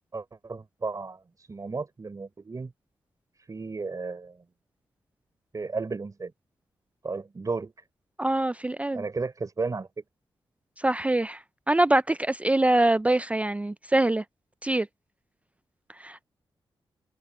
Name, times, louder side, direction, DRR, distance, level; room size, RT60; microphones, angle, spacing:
voice 1, 0.1-2.7 3.5-4.4 5.5-6.3 7.0-7.7 8.9-10.0, right 4 dB, 40° right, 3.6 m, -34 dB
voice 2, 8.2-9.0 10.8-11.4 11.7-14.2 14.6-14.9 16.0-16.2, right 1 dB, 15° right, 0.3 m, -24 dB
cardioid pair, 70°, 9 cm